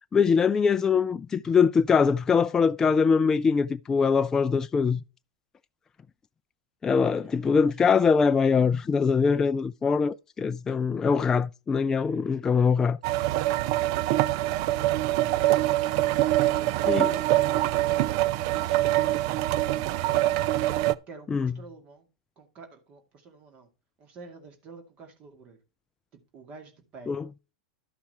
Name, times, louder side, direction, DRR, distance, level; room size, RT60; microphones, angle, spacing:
voice 1, 0.1-5.0 6.8-13.0 16.8-17.1 21.3-21.5 27.1-27.2, left 5 dB, 20° left, 0.4 m, -23 dB
voice 2, 6.9-7.7 21.1-22.1 22.4-23.7 24.0-25.6 26.1-27.2, right 4 dB, 40° right, 2.3 m, -50 dB
sound 1, 13.0-20.9, right 15 dB, 55° right, 0.5 m, -24 dB
12.0 x 5.7 x 4.3 m
hypercardioid pair, 105°, 3 cm